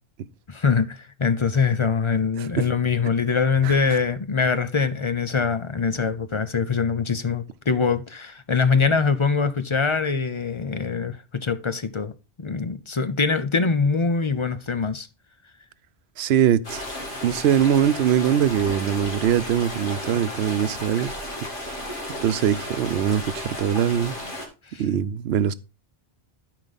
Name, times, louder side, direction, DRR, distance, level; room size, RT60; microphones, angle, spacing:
voice 1, 0.5-12.1 12.4-15.1 24.7-24.8, left 5 dB, 35° left, 0.6 m, -23 dB
voice 2, 3.6-4.0 16.2-16.8 17.2-21.1 22.2-24.1 24.8-25.5, right 9 dB, 90° right, 0.9 m, -22 dB
sound 1, 16.6-24.5, left 1 dB, 55° left, 2.4 m, -34 dB
12.5 x 5.0 x 3.9 m
omnidirectional pair, 1.0 m